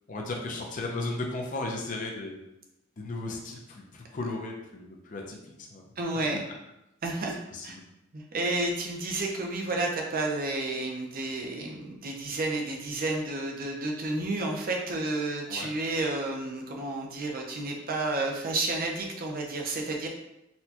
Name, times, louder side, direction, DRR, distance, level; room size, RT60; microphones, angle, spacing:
voice 1, 0.1-2.4 3.0-5.9 7.5-7.8 15.5-15.7, left 2 dB, 40° left, 0 dB, 0.5 m, -35 dB
voice 2, 6.0-6.4 7.0-7.4 7.6-7.8 8.1-20.1, right 2 dB, 45° right, 1 dB, 0.5 m, -31 dB
4.2 x 2.2 x 2.8 m, 0.88 s
head